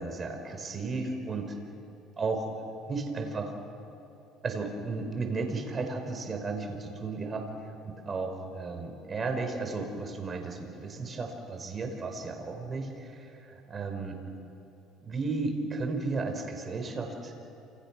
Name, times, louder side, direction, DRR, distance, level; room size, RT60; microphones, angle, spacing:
voice 1, 0.0-1.5 2.2-2.5 2.9-3.5 4.4-7.5 7.8-14.2 15.0-17.3, right 3 dB, 30° right, 4 dB, 5.1 m, -34 dB
30.0 x 28.5 x 6.3 m, 3.0 s
supercardioid pair, 105°, 0 cm